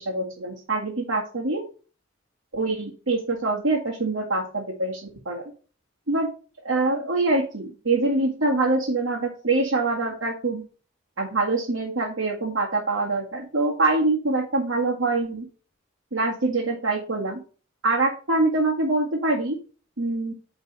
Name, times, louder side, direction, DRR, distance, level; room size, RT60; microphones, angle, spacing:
voice 1, 0.0-1.6 2.5-5.4 6.1-6.3 6.6-10.6 11.2-15.5 16.1-17.4 17.8-19.6 20.0-20.3, right 2 dB, 80° right, -4 dB, 2.0 m, -24 dB
9.3 x 4.0 x 5.4 m, 0.39 s
head